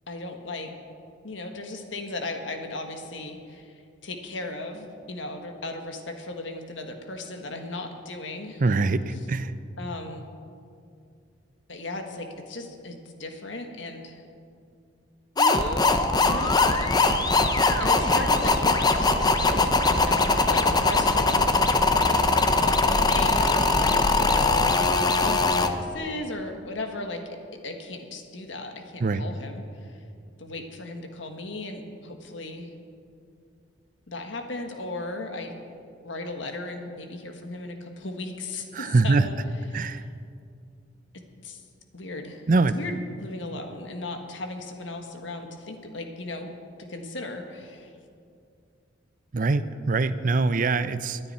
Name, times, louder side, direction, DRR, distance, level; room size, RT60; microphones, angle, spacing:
voice 1, 0.1-0.7 1.2-8.6 9.1-9.2 9.8-10.2 11.7-14.2 15.5-17.0 17.4-21.5 22.5-24.1 25.2-27.2 27.6-30.0 30.4-32.7 34.1-35.5 36.0-39.4 39.7-40.0 41.1-41.6 41.9-42.4 42.7-46.5 46.8-47.9, left 2 dB, 80° left, 4 dB, 1.6 m, -36 dB
voice 2, 8.6-9.5 29.0-29.2 38.7-39.3 39.7-40.0 42.5-42.7 49.3-51.2, right 3 dB, 45° right, 13 dB, 0.5 m, -23 dB
sound 1, 15.4-25.7, left 3 dB, 20° left, 0.7 m, -21 dB
24.0 x 9.8 x 4.3 m, 2.4 s
head